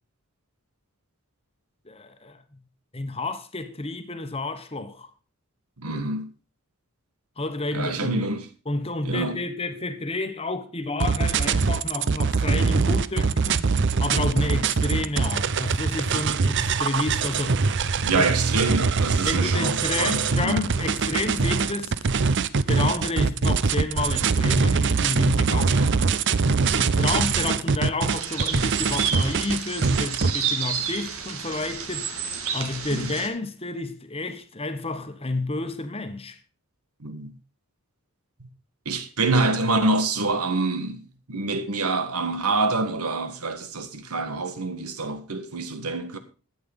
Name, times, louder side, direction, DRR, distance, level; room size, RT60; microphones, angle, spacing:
voice 1, 1.8-2.6 2.9-5.1 7.4-8.1 8.7-13.7 14.0-17.6 18.1-18.3 18.5-18.6 19.2-21.9 22.7-26.2 26.6-32.1 32.5-36.4, left 2 dB, 25° left, 1.2 m, -30 dB
voice 2, 5.8-6.3 7.7-8.5 9.1-9.4 18.0-20.6 25.5-25.9 27.1-27.5 32.9-33.1 37.0-37.3 38.9-46.2, right 3 dB, 85° right, 1.6 m, -26 dB
sound 1, 11.0-30.3, right 4 dB, 55° right, 0.6 m, -23 dB
sound 2, 28.1-33.3, right 7 dB, 70° right, 2.0 m, -30 dB
12.0 x 8.8 x 5.3 m
head